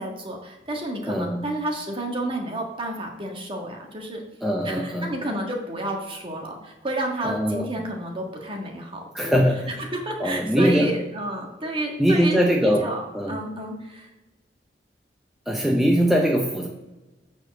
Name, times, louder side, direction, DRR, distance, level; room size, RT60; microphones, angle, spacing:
voice 1, 0.0-4.2 4.6-9.3 9.9-12.4 12.8-13.0 13.3-14.1, right 1 dB, 30° right, 1 dB, 1.6 m, -31 dB
voice 2, 1.0-1.4 4.4-5.1 7.2-7.7 9.1-9.7 10.2-11.0 12.0-13.3 15.5-16.7, equal, ahead, -1 dB, 0.7 m, -21 dB
8.7 x 4.5 x 6.5 m, 1.1 s
head